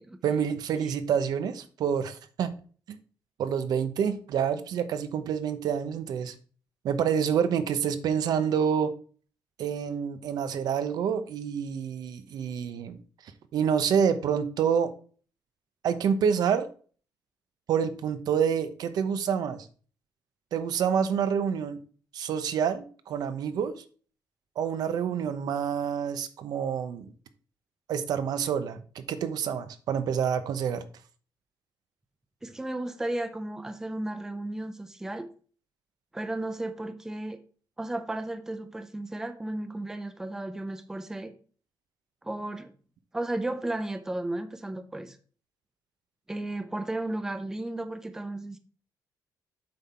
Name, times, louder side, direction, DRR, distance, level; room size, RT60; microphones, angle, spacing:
voice 1, 0.2-2.5 2.9-3.0 3.4-6.3 6.8-8.9 9.6-14.9 15.8-16.7 17.7-19.7 20.5-21.8 22.1-23.8 24.6-27.1 27.9-30.8, right 7 dB, 65° right, 0.9 m, -28 dB
voice 2, 32.4-35.3 36.1-37.4 37.8-41.3 42.2-42.7 43.1-45.2 46.3-48.6, right 1 dB, 5° right, 0.6 m, -34 dB
7.8 x 5.6 x 4.4 m
cardioid pair, 165°, 7 cm